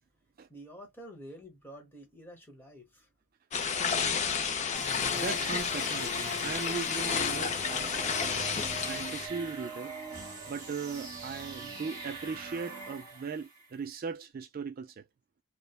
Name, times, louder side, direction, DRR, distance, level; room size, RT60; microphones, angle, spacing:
voice 1, 0.5-3.1, equal, 10° left, 1.0 m, -49 dB
sound 1, 3.5-9.3, left 6 dB, 35° left, 0.4 m, -31 dB
sound 2, 4.7-13.6, right 2 dB, 15° right, 1.3 m, -42 dB
voice 2, 5.2-7.9 8.2-8.5 8.9-9.9 10.5-15.0, right 5 dB, 45° right, 0.3 m, -38 dB
3.1 x 2.0 x 2.3 m
head